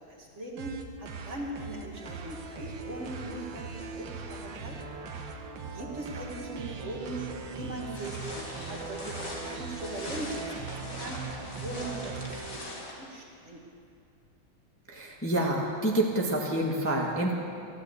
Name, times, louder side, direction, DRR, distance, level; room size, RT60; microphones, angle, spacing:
voice 1, 0.1-5.0 5.7-7.2 7.5-10.6 11.0-11.2 11.5-12.2 12.5-12.7 13.0-13.6, right 1 dB, 40° right, -1 dB, 1.9 m, -40 dB
sound 1, 0.6-12.6, right 4 dB, 75° right, 1.8 m, -40 dB
sound 2, 7.9-12.9, left 2 dB, 45° left, 2.5 m, -42 dB
voice 2, 14.9-17.3, right 1 dB, 10° left, -2 dB, 1.3 m, -28 dB
14.0 x 11.0 x 8.0 m, 2.4 s
omnidirectional pair, 2.1 m